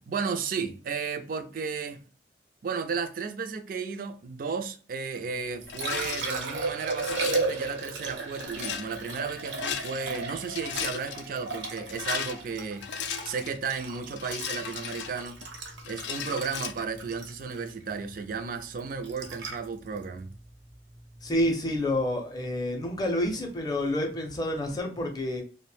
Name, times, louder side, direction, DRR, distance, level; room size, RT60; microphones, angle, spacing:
voice 1, 0.1-2.0 2.6-12.8 13.2-15.4 15.9-20.3, right 5 dB, 50° right, 0.3 m, -34 dB
Liquid, 5.4-21.5 24.3-24.4, right 3 dB, 80° right, 0.7 m, -36 dB
Rattle, 5.7-6.3 6.9-7.5 8.4-8.9 9.5-10.2 10.5-11.2 11.8-13.6 14.2-15.5 15.8-16.7, left 8 dB, 75° left, 0.3 m, -35 dB
voice 2, 21.2-25.4, left 1 dB, 20° left, 0.5 m, -28 dB
2.4 x 2.1 x 3.1 m
head